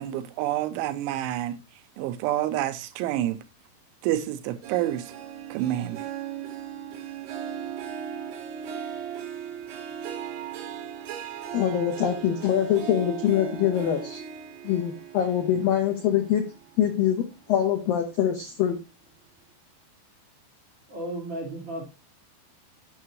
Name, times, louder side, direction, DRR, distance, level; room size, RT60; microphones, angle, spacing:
voice 1, 0.0-1.6 2.0-3.4 4.0-5.1 5.5-6.0, right 13 dB, 85° right, 3.0 m, -28 dB
Harp, 4.6-17.4 17.8-18.2 18.7-18.8, right 8 dB, 65° right, 3.2 m, -38 dB
voice 2, 11.5-14.2 14.6-16.4 16.8-18.8, left 10 dB, 80° left, 2.0 m, -24 dB
voice 3, 20.9-21.8, right 1 dB, 30° right, 4.3 m, -34 dB
9.5 x 6.7 x 3.0 m
omnidirectional pair, 5.5 m